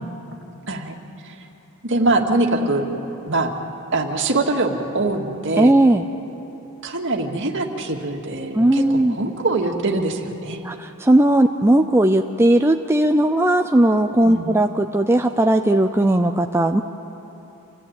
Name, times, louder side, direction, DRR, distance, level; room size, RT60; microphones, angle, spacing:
voice 1, 1.8-2.9 3.3-3.5 3.9-5.7 6.8-10.6 14.2-14.5, right 2 dB, 55° right, 2 dB, 2.1 m, -23 dB
voice 2, 5.6-6.0 8.5-9.2 10.6-16.8, right 1 dB, 10° right, 5 dB, 0.5 m, -17 dB
27.5 x 16.0 x 9.0 m, 3.0 s
head